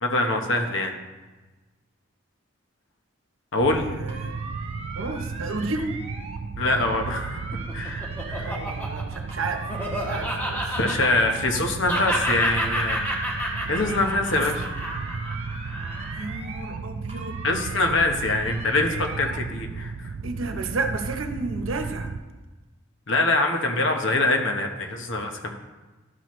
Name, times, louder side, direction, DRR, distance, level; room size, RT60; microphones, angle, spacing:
voice 1, 0.0-1.0 3.5-3.9 6.6-8.6 10.7-13.0 13.6-14.6 17.4-20.1 23.1-25.5, left 2 dB, 70° left, 4 dB, 1.0 m, -24 dB
sound 1, 3.6-22.2, right 4 dB, 65° right, 0.4 m, -34 dB
voice 2, 3.9-4.4 4.9-5.9 8.4-9.7 10.1-10.7 14.3-14.7 16.2-17.4 20.2-22.1, right 3 dB, 90° right, 5 dB, 0.9 m, -32 dB
sound 2, 4.1-6.4 6.7-9.0 9.3-11.6 11.9-14.2 14.5-16.8 17.1-19.4, right 4 dB, 30° right, 0.8 m, -40 dB
Laughter, 7.3-11.6 11.9-16.3, equal, 10° left, 1.1 m, -30 dB
12.5 x 6.0 x 3.2 m, 1.2 s
head